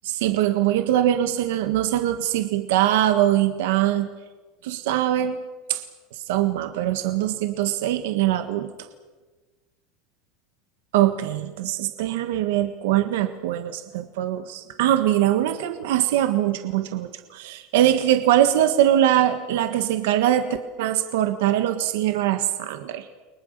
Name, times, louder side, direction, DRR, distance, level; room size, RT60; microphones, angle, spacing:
voice 1, 0.0-4.1 4.6-5.4 5.7-5.8 6.1-8.7 10.9-23.1, right 12 dB, 85° right, 8 dB, 1.6 m, -22 dB
30.0 x 23.5 x 6.8 m, 1.3 s
supercardioid pair, 165°, 0 cm